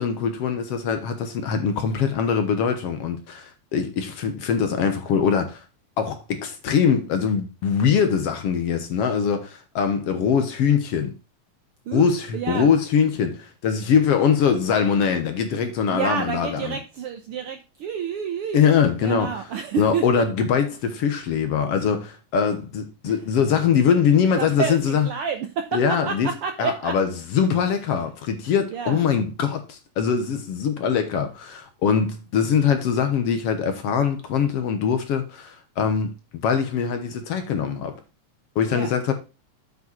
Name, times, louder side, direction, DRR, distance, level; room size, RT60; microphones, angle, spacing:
voice 1, 0.0-5.6 6.0-11.1 11.9-16.8 18.5-19.4 19.8-25.1 25.7-26.3 26.6-36.1 36.4-38.0 38.6-39.1, left 7 dB, 65° left, 1.9 m, -22 dB
voice 2, 11.8-12.7 15.9-18.6 19.0-20.2 23.0-23.2 24.4-26.9 28.7-29.1 38.7-38.9, right 7 dB, 70° right, 1.3 m, -29 dB
8.1 x 5.5 x 4.5 m
omnidirectional pair, 3.4 m